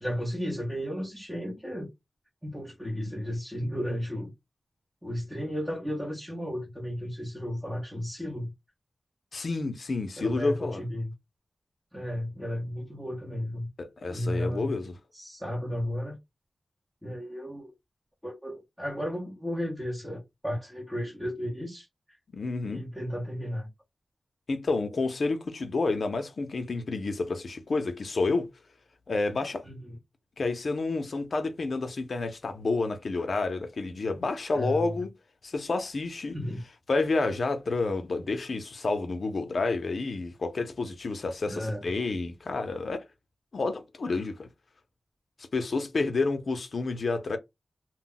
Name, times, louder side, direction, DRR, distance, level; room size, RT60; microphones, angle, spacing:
voice 1, 0.0-1.9 2.4-4.3 5.0-8.5 10.2-11.1 11.9-13.7 14.1-14.7 15.1-16.2 17.0-17.7 18.2-21.9 22.7-23.7 29.6-30.0 34.5-35.0 36.3-36.6 41.5-41.9, equal, 5° right, 0.8 m, -34 dB
voice 2, 9.3-10.8 13.8-15.0 22.3-22.8 24.5-28.5 29.1-29.6 30.4-35.1 35.4-36.4 36.9-43.0 43.5-44.5 45.5-47.4, left 3 dB, 60° left, 0.6 m, -29 dB
2.2 x 2.1 x 3.8 m
wide cardioid pair, 130°, 0 cm